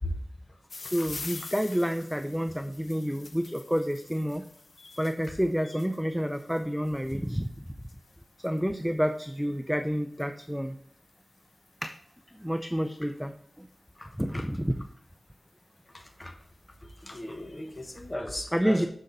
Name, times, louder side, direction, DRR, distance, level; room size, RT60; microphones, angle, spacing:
sound 1, 0.7-13.9 14.8-15.2 15.8-15.9 16.1-16.2 16.4-17.8, left 3 dB, 70° left, 0.6 m, -48 dB
voice 1, 0.9-4.4 5.0-7.5 8.4-10.7 11.8-11.9 12.4-13.3 13.6-13.7 14.2-14.7 18.5-18.9, equal, ahead, 7 dB, 0.5 m, -29 dB
voice 2, 14.0-14.5 15.9-16.3 16.8-18.9, left 1 dB, 30° left, 4 dB, 1.2 m, -37 dB
6.6 x 6.3 x 4.0 m, 0.63 s
wide cardioid pair, 70°, 0 cm